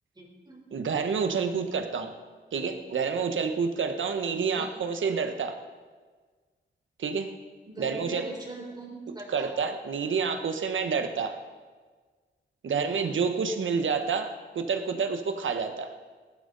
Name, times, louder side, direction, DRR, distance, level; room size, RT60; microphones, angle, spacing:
voice 1, 0.1-0.6 4.5-4.7 7.7-9.5 12.8-13.1, right 2 dB, 20° right, -2 dB, 3.9 m, -41 dB
voice 2, 0.7-2.1 2.5-5.5 7.0-7.3 7.8-8.2 9.3-11.4 12.6-15.9, right 5 dB, 80° right, 6 dB, 1.2 m, -28 dB
19.0 x 12.0 x 4.1 m, 1.4 s
wide cardioid pair, 120°, 20 cm